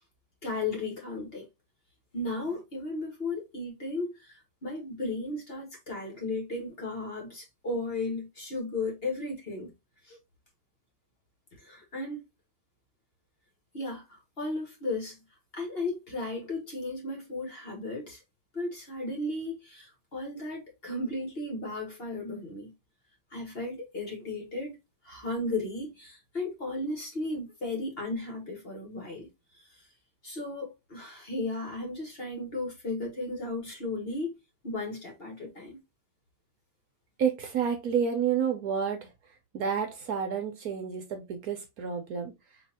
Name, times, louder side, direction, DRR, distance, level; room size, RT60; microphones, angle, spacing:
voice 1, 0.4-1.5 2.1-9.7 10.0-10.2 11.6-12.2 13.7-15.2 15.5-18.2 18.5-22.7 23.3-24.8 25.0-29.3 30.2-34.3 34.6-35.8, left 2 dB, 35° left, 1.6 m, -35 dB
voice 2, 37.2-39.1 39.5-42.6, right 7 dB, 65° right, 1.2 m, -30 dB
4.6 x 3.2 x 2.8 m
omnidirectional pair, 1.9 m